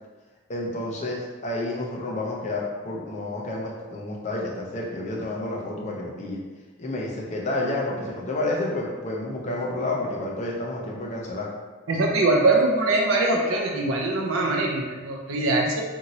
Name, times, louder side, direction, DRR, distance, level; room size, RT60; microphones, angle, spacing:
voice 1, 0.5-6.4 6.8-11.5, left 2 dB, 35° left, -2 dB, 0.5 m, -30 dB
voice 2, 11.9-15.8, right 2 dB, 75° right, 0 dB, 0.4 m, -22 dB
2.7 x 2.6 x 2.9 m, 1.3 s
head